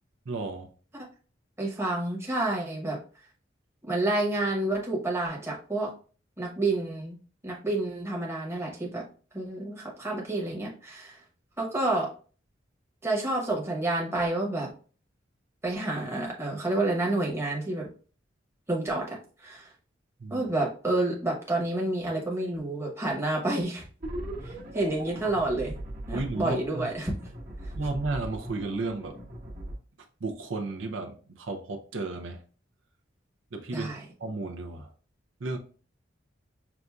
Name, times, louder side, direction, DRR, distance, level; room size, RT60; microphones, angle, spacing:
voice 1, 0.3-0.7 20.2-20.5 26.1-26.9 27.8-29.2 30.2-32.4 33.5-33.9 34.2-34.9 35.4-35.6, right 3 dB, 85° right, 0.6 m, -33 dB
voice 2, 1.6-3.0 3.8-5.9 6.4-7.2 7.4-9.0 9.3-11.2 11.6-12.1 13.0-14.7 15.6-17.9 18.7-19.7 20.3-23.8 24.4-25.8 26.1-27.1 33.7-34.0, right 2 dB, 15° right, 1.0 m, -29 dB
sound 1, 24.0-29.7, right 1 dB, 50° right, 1.1 m, -39 dB
5.8 x 2.6 x 2.3 m
head